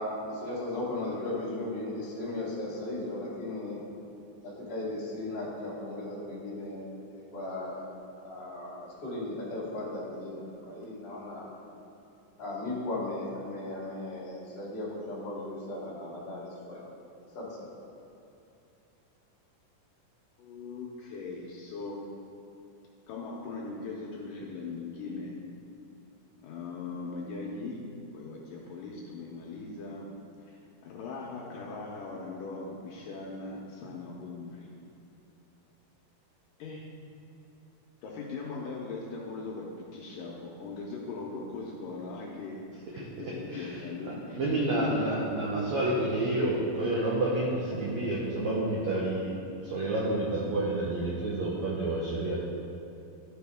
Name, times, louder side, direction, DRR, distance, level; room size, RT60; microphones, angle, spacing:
voice 1, 0.0-3.8 4.4-7.8 8.2-11.5 12.4-16.8 17.3-17.7, left 2 dB, 25° left, -7 dB, 1.4 m, -36 dB
voice 2, 20.4-22.0 23.1-25.3 26.4-27.8 28.1-30.1 30.5-34.7 36.6-36.8 38.0-42.6 42.9-44.3 44.7-44.8 47.7-47.8, left 3 dB, 75° left, -3 dB, 2.2 m, -40 dB
voice 3, 43.2-52.4, right 1 dB, 80° right, -4 dB, 1.6 m, -29 dB
12.5 x 5.1 x 3.5 m, 2.8 s
omnidirectional pair, 4.3 m